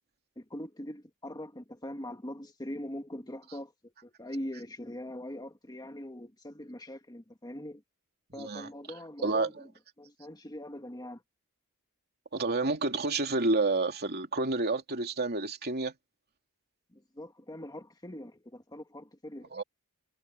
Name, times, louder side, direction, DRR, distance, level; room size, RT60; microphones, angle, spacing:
voice 1, 0.4-7.8 8.3-9.7 10.0-11.2 16.9-19.5, left 1 dB, 20° left, 1.7 m, -42 dB
voice 2, 8.4-8.7 9.2-9.5 12.3-15.9 19.5-19.6, right 3 dB, 45° right, 3.0 m, -29 dB
head